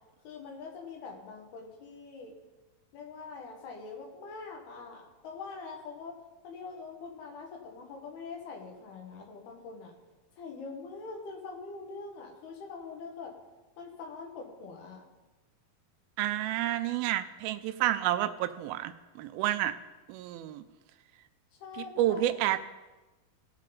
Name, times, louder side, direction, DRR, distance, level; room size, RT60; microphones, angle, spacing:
voice 1, 0.3-2.4 2.9-6.2 6.4-9.9 10.4-13.3 13.8-15.0 21.6-22.3, left 4 dB, 90° left, 1 dB, 3.4 m, -43 dB
voice 2, 16.2-19.7 20.1-20.6 21.8-22.6, right 13 dB, 85° right, 11 dB, 2.4 m, -30 dB
18.0 x 7.3 x 4.0 m, 1.1 s
omnidirectional pair, 4.4 m